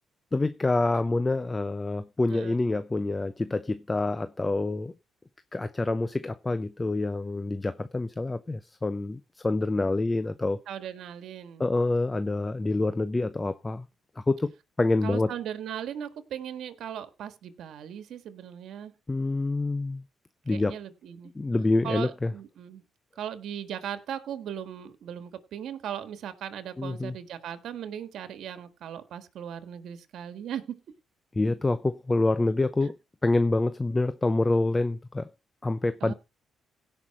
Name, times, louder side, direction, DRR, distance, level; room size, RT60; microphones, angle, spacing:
voice 1, 0.3-4.9 5.5-10.6 11.6-13.9 14.2-14.5 14.8-15.3 19.1-20.0 20.5-20.8 21.3-22.3 26.8-27.2 31.3-35.3 35.6-36.1, left 2 dB, 20° left, 0.7 m, -27 dB
voice 2, 10.7-11.6 15.0-18.9 20.5-21.3 21.8-22.8 23.2-30.7 36.0-36.1, right 9 dB, 75° right, 1.7 m, -38 dB
16.5 x 5.8 x 4.3 m
cardioid pair, 90°, 0 cm